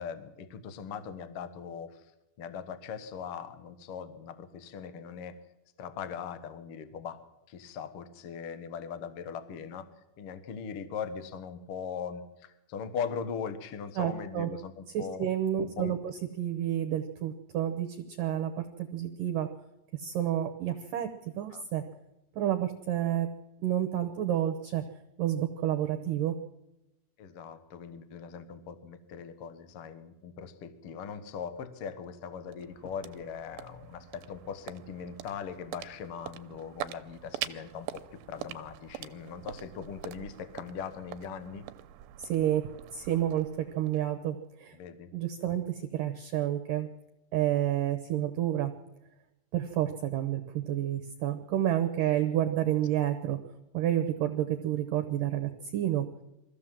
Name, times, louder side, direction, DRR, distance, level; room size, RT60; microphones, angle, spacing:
voice 1, 0.0-2.0 2.4-5.4 5.8-7.2 7.5-9.9 10.2-15.3 15.6-15.9 21.5-21.6 27.2-41.7 44.7-45.1, left 7 dB, 70° left, 11 dB, 1.3 m, -40 dB
voice 2, 14.0-14.5 14.9-19.5 19.9-21.1 21.4-21.8 22.4-23.3 23.6-24.8 25.2-26.4 42.2-42.6 42.9-44.8 45.1-46.9 47.3-48.7 49.5-53.4 53.7-56.1, right 11 dB, 70° right, 8 dB, 2.3 m, -30 dB
sound 1, 32.0-44.5, right 13 dB, 90° right, 3.0 m, -44 dB
23.0 x 15.5 x 7.6 m, 0.93 s
omnidirectional pair, 4.8 m